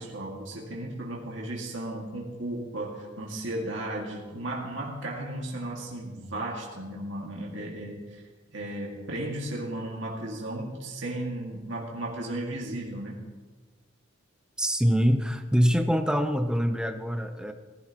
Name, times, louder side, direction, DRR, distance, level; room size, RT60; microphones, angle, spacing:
voice 1, 0.0-8.2 8.5-13.2, right 1 dB, 75° right, -3 dB, 2.0 m, -35 dB
voice 2, 14.6-17.5, equal, 5° right, 7 dB, 0.7 m, -24 dB
19.0 x 11.5 x 3.0 m, 1.3 s
head